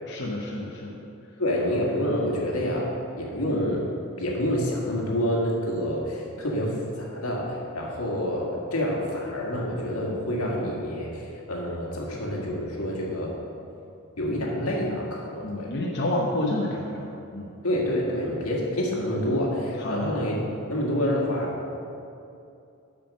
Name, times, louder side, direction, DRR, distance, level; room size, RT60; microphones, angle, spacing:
voice 1, 0.1-0.9 15.4-17.5 19.8-20.2, left 1 dB, 50° left, -4 dB, 0.9 m, -29 dB
voice 2, 1.4-2.9 3.2-3.8 4.2-11.2 11.5-13.3 14.2-15.7 17.6-20.4 20.7-21.7, equal, 80° left, -3 dB, 1.8 m, -27 dB
7.6 x 6.2 x 6.2 m, 2.6 s
head